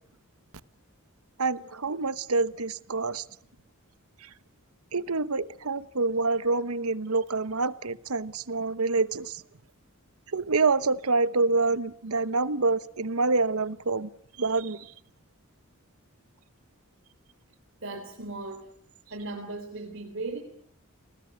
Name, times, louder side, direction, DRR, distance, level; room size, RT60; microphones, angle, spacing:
voice 1, 1.4-3.2 4.2-4.3 4.9-9.4 10.3-14.1 14.4-14.9, right 3 dB, 85° right, 15 dB, 1.1 m, -27 dB
voice 2, 17.8-18.7 19.1-20.4, right 2 dB, 60° right, 4 dB, 3.5 m, -37 dB
30.0 x 20.0 x 8.1 m, 0.66 s
head